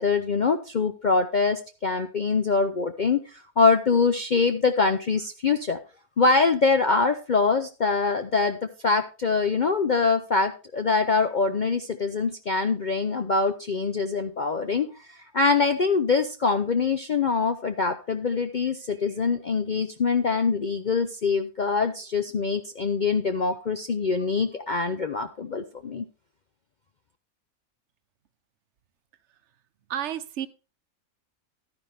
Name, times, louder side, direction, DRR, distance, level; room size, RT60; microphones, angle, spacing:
voice 1, 0.0-5.8 6.2-26.0, left 4 dB, 50° left, 8 dB, 0.5 m, -24 dB
voice 2, 29.9-30.5, right 10 dB, 55° right, 11 dB, 1.0 m, -30 dB
11.5 x 9.8 x 3.4 m, 0.32 s
omnidirectional pair, 1.5 m